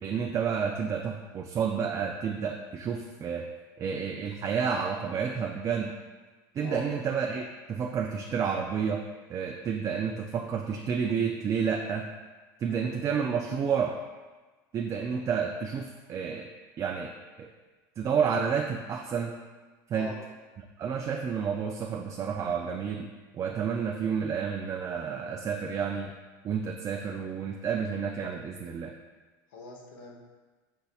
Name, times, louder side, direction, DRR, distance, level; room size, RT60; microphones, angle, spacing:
voice 1, 0.0-3.5 3.8-5.9 6.5-9.0 9.3-12.1 12.6-13.9 14.7-16.5 16.8-17.1 17.4-17.5 18.0-19.4 19.9-20.1 20.6-26.1 26.4-28.9, right 6 dB, 30° right, 2 dB, 0.3 m, -30 dB
voice 2, 29.5-30.2, left 4 dB, 80° left, -1 dB, 1.0 m, -42 dB
5.3 x 4.0 x 2.3 m, 1.3 s
supercardioid pair, 110°, 11 cm